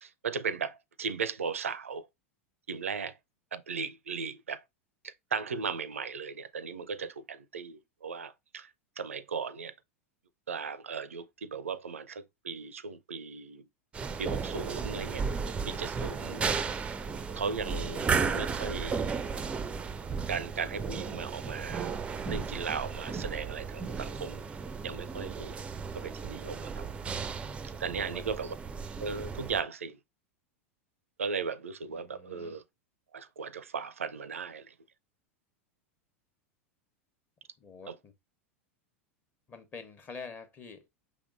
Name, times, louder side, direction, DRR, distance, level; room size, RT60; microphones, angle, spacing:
voice 1, 0.0-2.1 2.7-3.2 3.5-4.6 5.0-8.7 9.0-9.7 10.5-13.6 14.2-15.2 15.6-16.4 17.4-19.3 20.3-22.0 22.2-24.4 24.8-25.5 25.9-26.8 27.8-28.6 29.0-30.0 31.2-32.6 33.1-34.7 37.9-38.0, right 5 dB, 75° right, 0.4 m, -37 dB
sound 1, 13.9-29.6, right 5 dB, 15° right, 0.4 m, -34 dB
voice 2, 27.9-28.4 31.9-32.6 37.6-38.1 39.5-40.9, left 4 dB, 25° left, 1.0 m, -47 dB
5.9 x 3.5 x 2.4 m
figure-of-eight pair, 90°, 7 cm